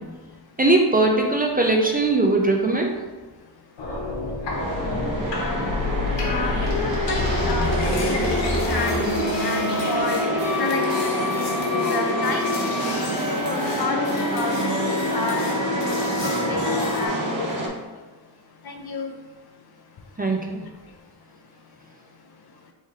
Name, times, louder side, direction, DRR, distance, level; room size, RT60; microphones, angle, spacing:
voice 1, 0.6-3.0 20.2-20.6, right 2 dB, 20° right, 1 dB, 0.4 m, -20 dB
sound 1, 3.8-17.1, left 2 dB, 85° left, 1.0 m, -27 dB
sound 2, 4.5-17.7, right 1 dB, 45° right, 0.8 m, -28 dB
voice 2, 6.2-9.0 9.4-10.2 10.6-11.1 11.7-12.5 12.8-13.0 13.3-14.0 14.3-16.1 16.4-17.7 18.6-19.1, left 3 dB, 60° left, 4 dB, 0.7 m, -30 dB
3.7 x 3.1 x 4.2 m, 1.2 s
wide cardioid pair, 115°, 43 cm